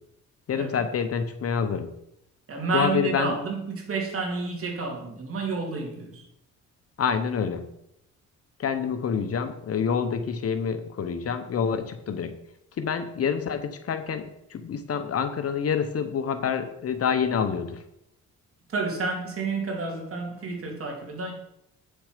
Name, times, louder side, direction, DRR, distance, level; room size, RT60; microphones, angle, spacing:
voice 1, 0.5-1.9 2.7-3.3 7.0-7.7 8.6-12.4 12.8-17.8, left 7 dB, 50° left, 9 dB, 1.0 m, -27 dB
voice 2, 2.5-6.2 18.7-21.3, right 3 dB, 45° right, 1 dB, 3.0 m, -30 dB
8.7 x 6.9 x 5.1 m, 0.80 s
cardioid pair, 90°, 30 cm